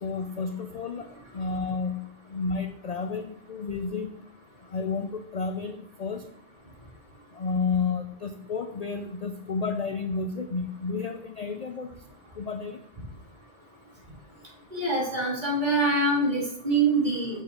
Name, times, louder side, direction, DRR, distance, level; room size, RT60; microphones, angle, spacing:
voice 1, 0.0-1.1 1.3-4.1 4.7-6.2 7.3-11.9 12.3-12.8, left 4 dB, 50° left, 7 dB, 0.5 m, -31 dB
voice 2, 14.7-17.4, right 2 dB, 40° right, -4 dB, 2.9 m, -25 dB
7.2 x 7.1 x 3.8 m, 0.75 s
omnidirectional pair, 1.2 m